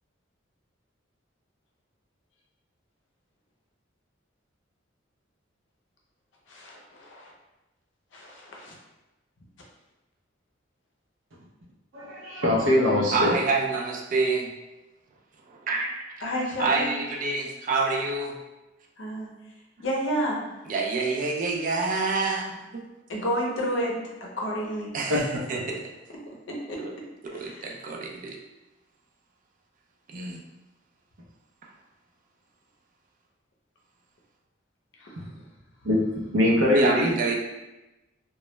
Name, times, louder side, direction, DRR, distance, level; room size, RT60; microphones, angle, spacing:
voice 1, 6.5-7.3 8.1-8.7 16.2-16.9 19.0-19.3 19.8-20.4 23.1-24.0 24.4-24.9 26.5-26.8 27.3-27.7 35.0-35.1, equal, 65° left, -2 dB, 0.6 m, -30 dB
voice 2, 11.9-13.3 25.1-25.2 35.8-36.0 36.3-37.1, left 1 dB, 85° right, -3 dB, 0.6 m, -22 dB
voice 3, 13.1-14.6 15.5-16.2 16.6-18.3 20.7-22.8 24.9-25.8 26.8-26.9 27.2-28.4 30.1-30.4 36.7-37.3, right 3 dB, 45° right, 0 dB, 0.3 m, -27 dB
2.2 x 2.0 x 2.9 m, 1.0 s
head